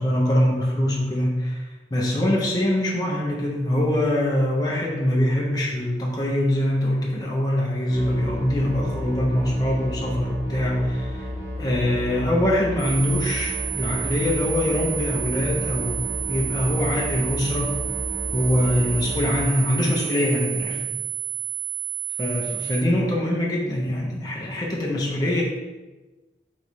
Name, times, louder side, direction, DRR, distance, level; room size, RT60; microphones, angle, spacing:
voice 1, 0.0-11.3 11.6-17.8 18.3-20.8 22.2-25.4, left 1 dB, 20° left, -3 dB, 0.5 m, -23 dB
sound 1, 7.9-19.5, left 1 dB, 55° right, 1.4 m, -32 dB
sound 2, 12.8-22.8, right 12 dB, 25° right, 1.1 m, -30 dB
3.3 x 3.0 x 4.0 m, 1.2 s
head